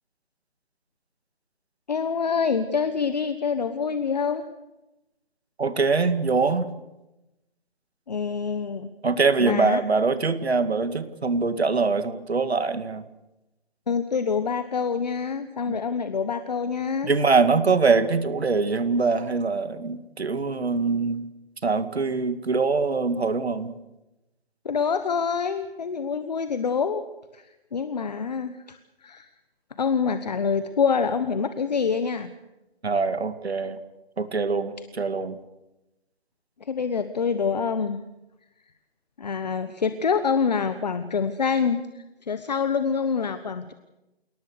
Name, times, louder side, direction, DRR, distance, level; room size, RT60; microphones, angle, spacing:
voice 1, 1.9-4.5 8.1-8.9 9.4-9.8 13.9-17.1 24.6-27.0 27.3-29.3 29.8-32.3 36.6-38.0 39.2-43.7, left 6 dB, 40° left, 11 dB, 1.2 m, -26 dB
voice 2, 5.6-6.7 9.0-13.0 15.7-15.8 17.0-21.3 21.6-23.8 32.8-33.8 34.2-35.4, right 4 dB, 80° right, 11 dB, 2.4 m, -23 dB
28.5 x 19.0 x 6.6 m, 0.97 s
hypercardioid pair, 170°, 31 cm